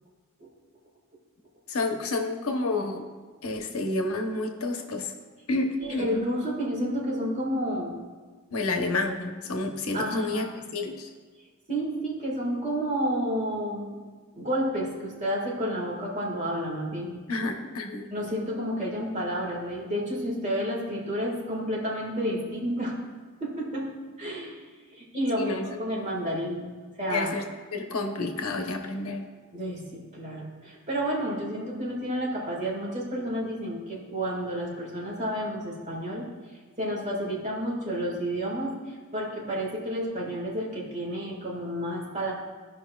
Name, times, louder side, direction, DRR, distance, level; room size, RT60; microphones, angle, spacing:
voice 1, 1.7-3.1 3.4-5.1 5.5-6.1 8.5-11.1 17.3-18.1 25.4-25.6 27.1-27.4 27.7-29.3, left 2 dB, 75° left, 4 dB, 0.9 m, -29 dB
voice 2, 5.8-8.0 9.9-10.5 11.7-14.0 14.3-17.2 18.1-23.0 23.4-24.6 24.9-26.7 27.0-27.3 29.5-36.3 36.8-42.3, equal, 35° right, -3 dB, 1.8 m, -30 dB
16.0 x 5.4 x 2.3 m, 1.5 s
head